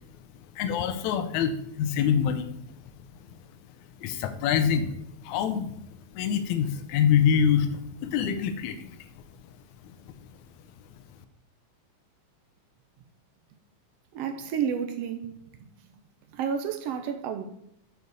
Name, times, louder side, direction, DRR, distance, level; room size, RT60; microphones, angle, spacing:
voice 1, 0.6-2.5 4.0-4.9 5.2-5.8 6.2-8.9, left 8 dB, 80° left, 2.0 m, -25 dB
voice 2, 14.1-16.0 16.3-17.4, right 7 dB, 75° right, 1.6 m, -31 dB
7.0 x 4.0 x 6.4 m
omnidirectional pair, 3.3 m